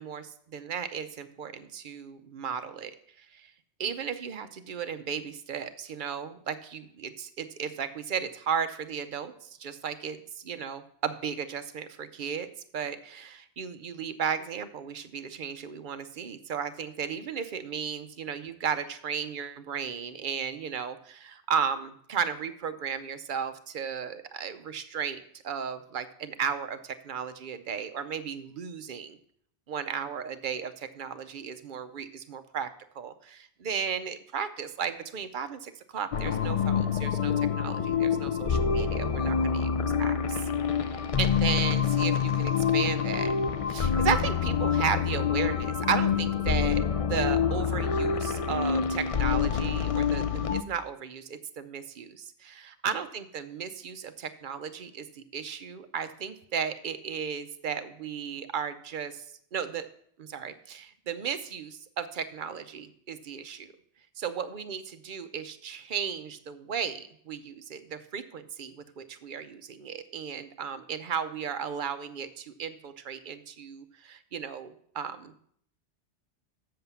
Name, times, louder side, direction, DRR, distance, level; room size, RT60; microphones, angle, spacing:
voice 1, 0.0-2.9 3.2-3.5 3.8-12.5 12.7-29.2 29.7-32.7 32.9-39.7 40.0-43.3 43.7-59.3 59.5-59.9 60.2-63.7 64.2-75.3, right 7 dB, 55° right, 10 dB, 0.8 m, -35 dB
sound 1, 36.1-50.6, left 7 dB, 55° left, 0.4 m, -26 dB
7.7 x 5.6 x 6.9 m, 0.65 s
omnidirectional pair, 1.1 m